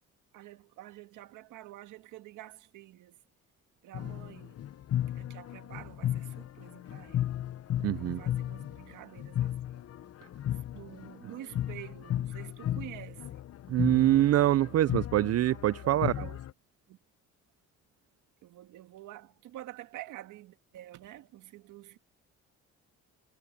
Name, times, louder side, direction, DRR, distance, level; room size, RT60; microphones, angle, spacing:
voice 1, 0.3-3.2 3.8-4.6 5.1-7.2 7.9-9.8 10.5-13.4 15.8-16.4 16.9-17.0 18.4-22.0, right 14 dB, 90° right, 1.8 m, -48 dB
sound 1, 3.9-16.5, left 11 dB, 55° left, 0.8 m, -35 dB
voice 2, 7.8-8.2 13.7-16.1, right 13 dB, 55° right, 0.5 m, -25 dB
cardioid pair, 90°, 30 cm